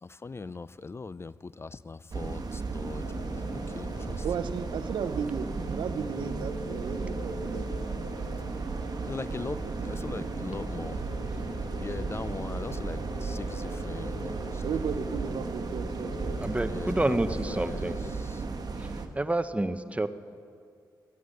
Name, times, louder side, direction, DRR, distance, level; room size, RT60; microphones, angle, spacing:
voice 1, 0.0-4.2 9.0-11.1 11.8-14.6 16.7-19.0, left 4 dB, 30° left, 18 dB, 0.4 m, -40 dB
sound 1, 2.1-19.1, right 4 dB, 55° right, 1.2 m, -35 dB
sound 2, 3.0-18.1, left 3 dB, 90° left, 1.2 m, -44 dB
voice 2, 4.2-7.7 9.6-9.7 13.9-14.0 14.6-16.4, right 6 dB, 80° right, 11 dB, 0.6 m, -34 dB
sound 3, 9.6-18.2, equal, 10° left, 4.5 m, -50 dB
voice 3, 16.4-18.0 18.8-18.9 19.1-20.1, right 2 dB, 15° right, 11 dB, 0.8 m, -29 dB
15.0 x 9.3 x 7.8 m, 2.3 s
supercardioid pair, 50°, 8 cm